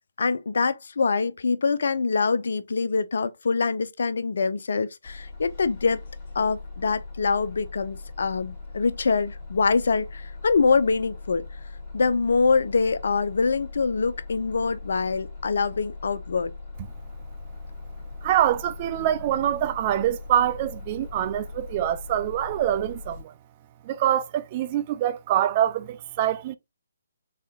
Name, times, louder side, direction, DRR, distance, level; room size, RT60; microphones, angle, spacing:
voice 1, 0.2-6.0 6.3-11.4 11.9-16.5, left 4 dB, 65° left, 0.5 m, -24 dB
Bus, 5.0-23.2, left 3 dB, 20° left, 2.0 m, -40 dB
voice 2, 18.2-23.3 23.8-26.6, right 11 dB, 35° right, 0.3 m, -25 dB
4.2 x 3.6 x 2.2 m
figure-of-eight pair, 140°, 0 cm